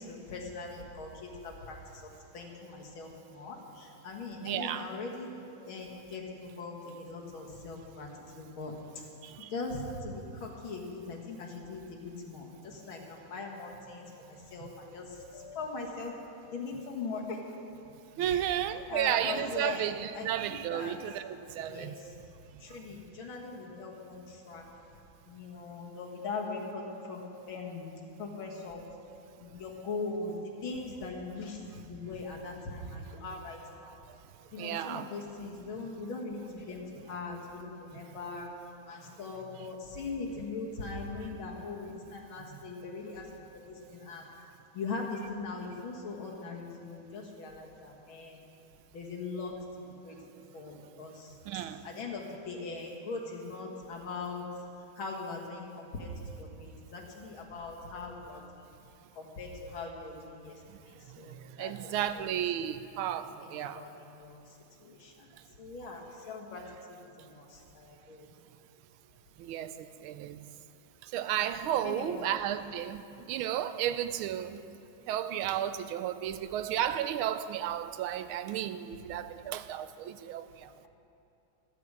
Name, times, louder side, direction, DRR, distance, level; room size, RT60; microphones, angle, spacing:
voice 1, 0.0-5.3 5.7-8.1 8.3-8.8 9.5-16.1 16.5-17.4 18.2-18.5 18.9-20.9 21.7-22.2 22.6-24.6 25.3-27.9 28.2-28.9 29.4-34.0 34.5-38.5 38.9-44.3 44.7-48.4 48.9-50.2 50.5-54.5 55.0-58.7 59.1-62.3 63.4-65.3 65.6-68.3 71.8-72.2, left 3 dB, 75° left, 2.4 m, -41 dB
voice 2, 4.4-4.9 9.2-9.5 14.6-14.7 18.2-22.0 34.6-35.1 42.5-42.6 51.5-51.8 61.6-63.8 69.4-70.4 71.1-73.0 73.3-74.6 75.1-80.7, right 11 dB, 85° right, 1.4 m, -33 dB
14.0 x 13.5 x 4.8 m
omnidirectional pair, 2.3 m